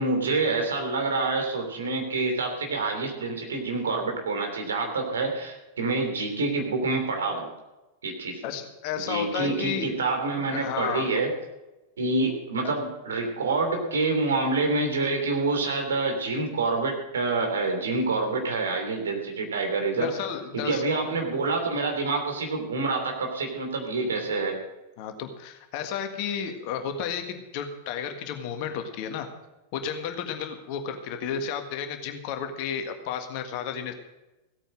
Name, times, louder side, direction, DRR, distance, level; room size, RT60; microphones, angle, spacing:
voice 1, 0.0-7.5 8.0-8.4 9.1-11.3 12.0-20.1 20.5-24.6, right 3 dB, 65° right, 3 dB, 3.1 m, -27 dB
voice 2, 8.4-9.9 10.5-11.1 20.0-20.8 25.0-29.3 29.7-33.9, left 7 dB, 45° left, 6 dB, 1.8 m, -32 dB
16.0 x 8.8 x 6.3 m, 1.0 s
figure-of-eight pair, 90°, 0 cm